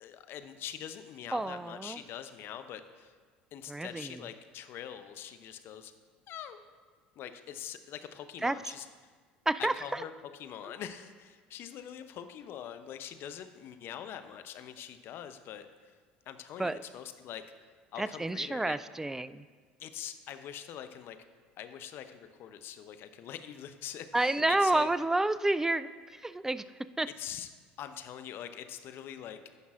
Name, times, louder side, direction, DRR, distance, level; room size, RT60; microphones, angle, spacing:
voice 1, 0.0-3.1 3.5-5.9 6.3-6.6 7.2-8.9 9.6-10.1 10.4-15.9 16.3-17.4 17.9-18.8 19.8-21.2 21.6-24.9 27.2-27.5 27.8-29.4, left 10 dB, 50° left, 9 dB, 0.6 m, -43 dB
voice 2, 1.3-2.0 3.7-4.2 8.4-8.6 9.5-10.0 16.6-16.8 18.0-19.5 24.1-26.6 27.0-27.1, right 2 dB, 10° right, 15 dB, 0.3 m, -30 dB
16.0 x 5.4 x 2.4 m, 1.5 s
hypercardioid pair, 70°, 5 cm